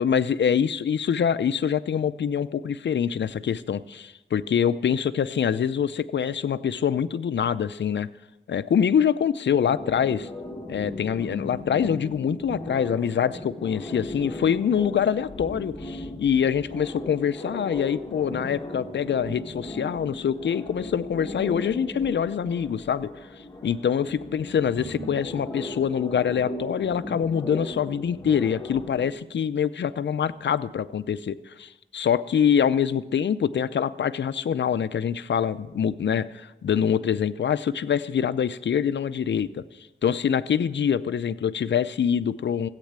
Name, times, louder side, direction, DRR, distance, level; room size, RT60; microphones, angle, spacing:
voice 1, 0.0-8.1 8.5-10.3 10.7-23.1 23.6-39.6 40.0-42.7, left 8 dB, 65° left, 14 dB, 0.6 m, -25 dB
sound 1, 9.7-29.1, left 1 dB, 15° left, 1.5 m, -37 dB
15.0 x 8.4 x 8.8 m, 0.98 s
wide cardioid pair, 120°, 19 cm